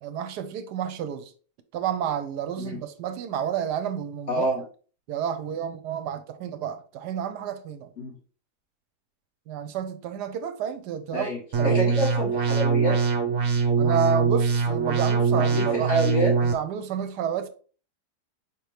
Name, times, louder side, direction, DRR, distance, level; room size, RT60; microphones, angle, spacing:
voice 1, 0.0-1.3 1.7-4.5 5.1-7.9 9.5-11.3 11.6-11.8 13.8-15.9 16.4-17.5, right 8 dB, 80° right, 1.2 m, -30 dB
voice 2, 4.3-4.6 8.0-8.1 11.1-13.0 15.3-16.3, equal, 40° left, 2.3 m, -27 dB
sound 1, 11.5-16.5, right 5 dB, 55° right, 1.1 m, -23 dB
5.2 x 2.9 x 3.3 m
omnidirectional pair, 1.8 m